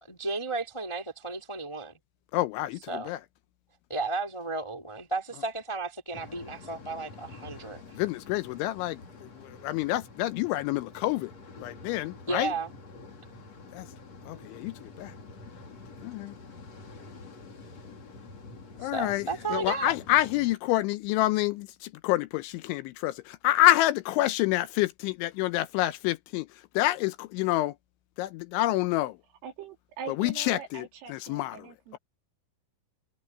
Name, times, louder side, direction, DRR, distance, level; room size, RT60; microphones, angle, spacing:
voice 1, 0.0-1.9 2.9-3.1 3.9-8.0 12.3-12.7 18.8-19.9, right 3 dB, 20° left, 0.8 m, -33 dB
voice 2, 2.3-3.2 7.9-11.3 11.6-12.5 13.7-13.9 14.3-15.1 16.0-16.4 18.8-26.5 26.7-27.8 28.2-29.2 30.2-31.7, left 16 dB, 80° left, 2.9 m, -28 dB
sound 1, 6.1-20.6, left 3 dB, 35° left, 4.0 m, -47 dB
voice 3, 29.4-32.0, right 7 dB, 80° right, 6.1 m, -42 dB
omnidirectional pair, 5.7 m